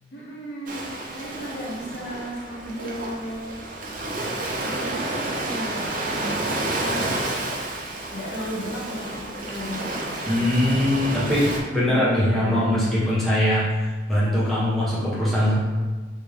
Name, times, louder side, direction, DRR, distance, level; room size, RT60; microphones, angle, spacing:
voice 1, 0.1-0.9 1.1-3.6 4.7-7.1 8.1-9.9 11.8-12.8, equal, 60° left, -5 dB, 1.0 m, -34 dB
Ocean, 0.7-11.6, right 2 dB, 50° right, 0.6 m, -30 dB
voice 2, 10.3-13.6 14.1-15.5, left 1 dB, ahead, -10 dB, 1.1 m, -21 dB
3.3 x 3.1 x 3.4 m, 1.3 s
head